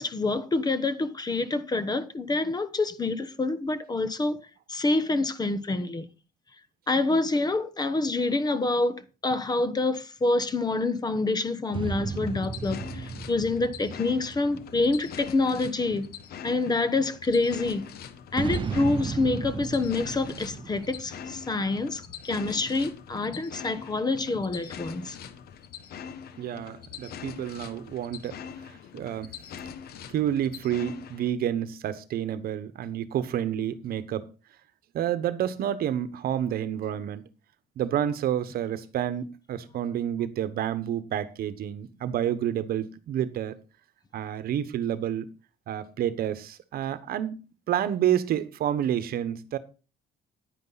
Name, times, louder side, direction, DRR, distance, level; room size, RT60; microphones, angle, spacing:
voice 1, 0.0-4.4 4.7-6.1 6.9-16.1 16.4-17.9 18.3-25.2, left 3 dB, 25° left, 1.1 m, -27 dB
sound 1, 11.7-15.4 18.3-22.1, right 5 dB, 30° right, 0.6 m, -35 dB
sound 2, 12.1-31.3, left 7 dB, 65° left, 1.2 m, -43 dB
voice 2, 26.4-28.4 28.9-29.3 30.1-34.3 34.9-37.2 37.8-43.5 44.1-45.3 45.7-47.4 47.7-49.6, right 10 dB, 65° right, 1.1 m, -29 dB
10.5 x 9.6 x 4.0 m
cardioid pair, 110°, 17 cm